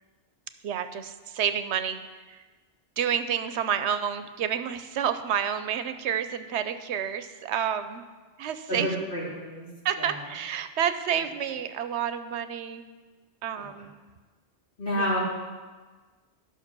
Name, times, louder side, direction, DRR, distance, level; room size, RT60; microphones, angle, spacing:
voice 1, 0.6-2.4 3.0-8.0 8.4-8.9 9.8-12.8 13.4-14.0 14.9-15.1, right 8 dB, 80° right, 10 dB, 0.9 m, -29 dB
voice 2, 8.7-9.7 10.0-10.1 14.8-15.2, equal, 50° left, -6 dB, 3.2 m, -29 dB
12.0 x 5.9 x 6.0 m, 1.4 s
omnidirectional pair, 1.1 m